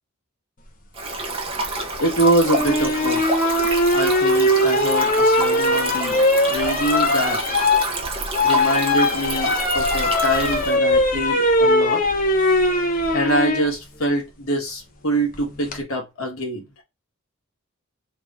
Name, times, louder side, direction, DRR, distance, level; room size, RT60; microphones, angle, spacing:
Stream, 0.9-10.7, right 3 dB, 25° right, 0.8 m, -28 dB
voice 1, 2.0-3.5 3.9-7.4 8.4-12.0 13.1-16.6, right 1 dB, 75° left, 1.7 m, -24 dB
sound 1, 2.5-13.7 15.3-15.8, left 1 dB, 40° left, 0.8 m, -20 dB
3.4 x 2.6 x 3.6 m
head